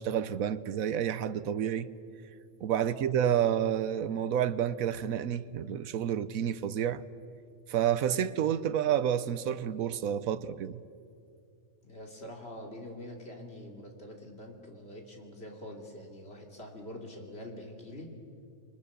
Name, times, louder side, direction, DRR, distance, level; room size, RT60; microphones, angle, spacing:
voice 1, 0.0-1.9 2.6-7.0 7.7-10.8, right 9 dB, 85° right, 1.2 m, -29 dB
voice 2, 2.8-3.1 11.8-18.1, left 1 dB, 50° left, 3.1 m, -45 dB
28.0 x 23.0 x 6.8 m
omnidirectional pair, 1.4 m